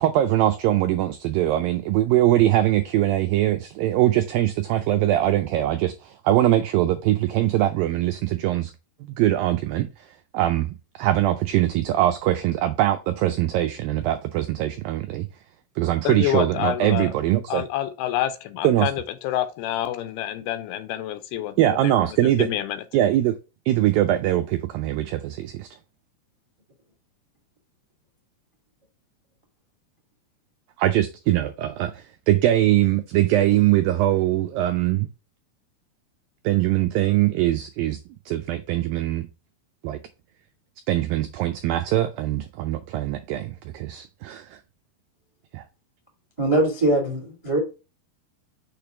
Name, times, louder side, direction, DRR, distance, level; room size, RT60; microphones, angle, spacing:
voice 1, 0.0-8.7 9.1-10.1 10.3-15.3 15.8-17.6 18.6-18.9 21.6-22.5 22.9-23.4 23.7-25.7 30.8-35.1 36.4-38.0 38.3-39.3 39.8-40.0 40.9-44.6 45.5-45.6, right 13 dB, 85° right, 2.0 m, -22 dB
voice 2, 16.0-17.1 17.5-22.0 22.2-22.8, left 12 dB, 80° left, 2.5 m, -28 dB
voice 3, 46.4-47.6, right 1 dB, 30° right, 0.5 m, -22 dB
6.6 x 3.4 x 5.7 m
omnidirectional pair, 4.7 m